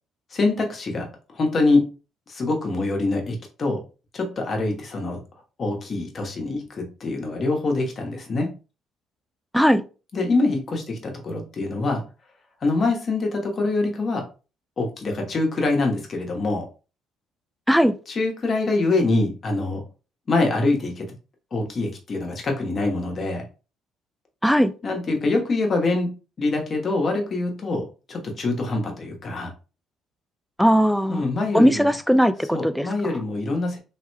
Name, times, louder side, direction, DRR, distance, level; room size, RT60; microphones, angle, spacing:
voice 1, 0.3-1.0 1.3-1.9 2.3-3.8 4.1-5.2 5.6-8.5 10.1-12.0 12.6-14.2 14.8-16.6 18.1-19.8 20.3-21.0 21.5-23.4 24.8-26.1 26.4-29.5 31.1-31.9 32.5-33.8, left 2 dB, 45° left, 1.2 m, -24 dB
voice 2, 30.6-31.2 31.5-32.9, equal, ahead, 0.4 m, -18 dB
3.4 x 3.0 x 2.2 m
supercardioid pair, 65°, 0 cm